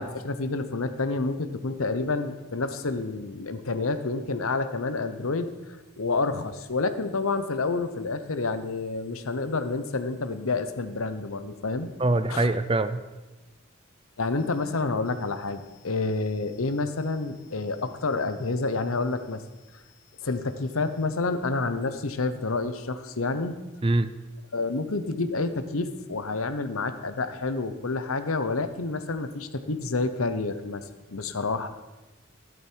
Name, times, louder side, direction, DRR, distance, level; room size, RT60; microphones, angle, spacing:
voice 1, 0.0-5.5 6.0-11.9 12.3-12.5 14.2-19.4 20.2-23.6 24.5-30.8 31.1-31.7, left 3 dB, 90° left, 11 dB, 1.0 m, -29 dB
voice 2, 12.0-13.0 23.8-24.1, right 2 dB, 25° right, 12 dB, 0.6 m, -23 dB
14.0 x 12.5 x 4.7 m, 1.1 s
head